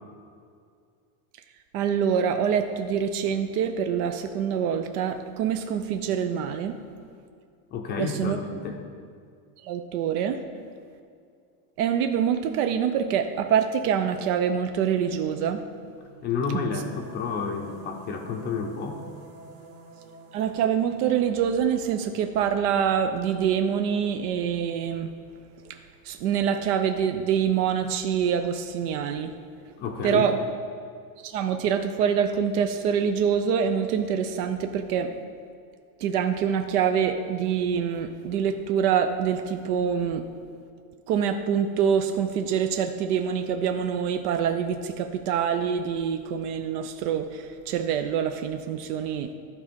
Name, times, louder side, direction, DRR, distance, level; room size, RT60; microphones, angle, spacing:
voice 1, 1.7-6.8 8.0-8.4 9.6-10.4 11.8-15.6 20.3-25.1 25.6-25.8 26.0-29.3 30.0-30.4 31.2-35.1 36.0-40.3 41.1-49.3, right 8 dB, 85° right, 7 dB, 0.7 m, -25 dB
voice 2, 7.7-8.8 16.2-19.0 29.8-30.2, left 5 dB, 25° left, 3 dB, 0.4 m, -30 dB
sound 1, 16.8-23.8, right 4 dB, 55° right, 1.7 m, -49 dB
12.0 x 4.2 x 5.1 m, 2.3 s
cardioid pair, 160°, 44 cm